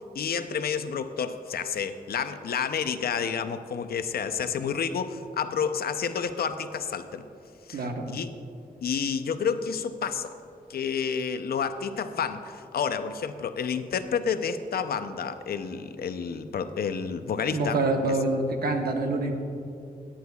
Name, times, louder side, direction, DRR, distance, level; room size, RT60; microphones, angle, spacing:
voice 1, 0.1-7.2 7.7-7.8 8.1-8.3 8.8-10.3 10.7-17.8, left 6 dB, 85° left, 10 dB, 0.6 m, -30 dB
voice 2, 7.7-8.1 17.5-19.4, right 2 dB, 85° right, 4 dB, 1.1 m, -26 dB
17.5 x 10.0 x 2.3 m, 2.7 s
wide cardioid pair, 100°, 15 cm